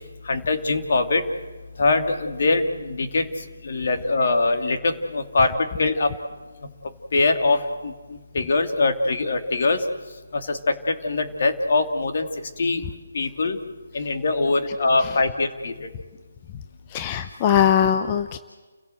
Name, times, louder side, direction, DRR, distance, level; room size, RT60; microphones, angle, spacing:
voice 1, 0.2-1.3 1.8-3.3 3.6-6.1 7.1-7.9 8.3-9.8 10.3-12.3 12.6-12.9 13.1-13.6 13.9-15.9, left 3 dB, 55° left, 6 dB, 2.8 m, -22 dB
voice 2, 16.9-18.4, left 9 dB, 25° left, 9 dB, 0.9 m, -21 dB
30.0 x 17.0 x 7.9 m, 1.3 s
figure-of-eight pair, 150°, 0 cm